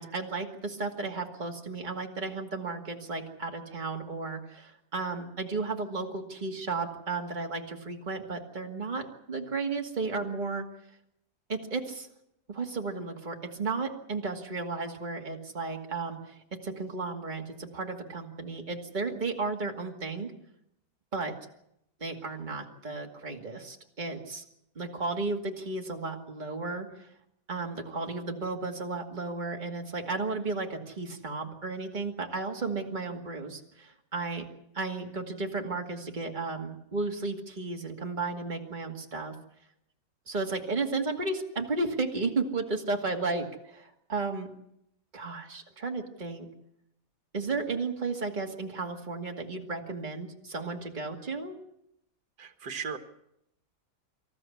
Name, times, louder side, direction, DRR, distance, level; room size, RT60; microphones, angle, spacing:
voice 1, 0.0-10.7 11.5-12.1 12.5-20.3 21.1-21.3 22.0-24.4 24.8-27.1 27.5-34.5 34.7-39.3 40.3-44.5 45.1-46.5 47.3-51.6, right 3 dB, 25° right, 1 dB, 2.4 m, -34 dB
voice 2, 52.4-53.0, right 6 dB, 65° right, 7 dB, 2.2 m, -36 dB
26.0 x 14.5 x 8.6 m, 0.79 s
omnidirectional pair, 1.9 m